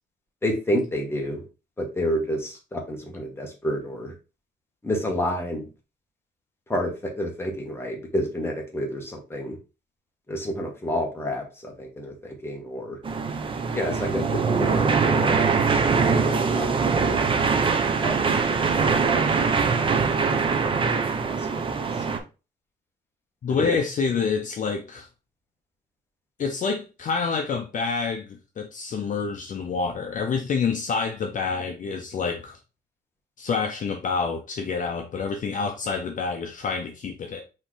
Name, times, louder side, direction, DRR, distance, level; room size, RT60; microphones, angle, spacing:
voice 1, 0.4-1.4 1.8-4.1 4.8-5.6 6.7-6.9 7.2-9.6 10.3-13.0 13.7-17.2 18.0-18.1 18.6-19.3 21.2-21.4 23.6-23.7, equal, 15° left, 1.2 m, -29 dB
sound 1, 13.0-22.2, right 5 dB, 30° right, 0.6 m, -23 dB
voice 2, 23.4-25.1 26.4-32.6 33.4-37.4, left 5 dB, 45° left, 0.6 m, -27 dB
4.3 x 3.0 x 3.7 m
cardioid pair, 145°, 18 cm